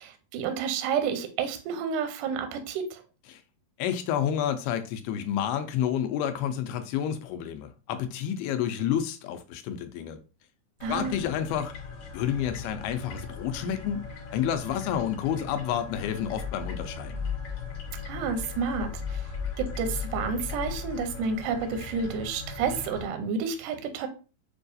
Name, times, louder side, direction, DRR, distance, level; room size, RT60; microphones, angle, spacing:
voice 1, 0.0-3.0 10.8-11.2 18.1-19.3 19.6-24.1, right 6 dB, 85° right, 1.9 m, -30 dB
voice 2, 3.8-10.2 10.9-11.7 12.1-14.0 14.3-17.2, left 9 dB, 85° left, 2.5 m, -29 dB
sound 1, 10.8-23.1, left 6 dB, 70° left, 1.8 m, -37 dB
6.8 x 2.3 x 2.5 m
omnidirectional pair, 4.4 m